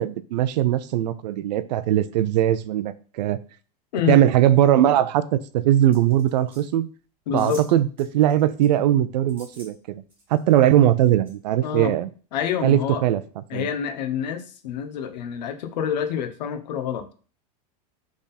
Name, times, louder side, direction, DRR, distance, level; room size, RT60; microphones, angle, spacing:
voice 1, 0.0-3.4 4.1-6.9 7.3-10.0 10.3-12.1 12.6-13.2 13.5-13.7, right 12 dB, 85° right, 15 dB, 0.5 m, -20 dB
sound 1, 5.9-6.6 7.4-7.7 8.0-8.7 9.3-9.7 10.1-10.8 11.2-11.3, right 1 dB, 10° right, 1.6 m, -47 dB
voice 2, 7.3-7.6 11.6-11.9 12.3-13.0 13.5-17.1, left 8 dB, 90° left, 7 dB, 0.8 m, -27 dB
3.6 x 3.6 x 4.1 m, 0.39 s
supercardioid pair, 180°, 21 cm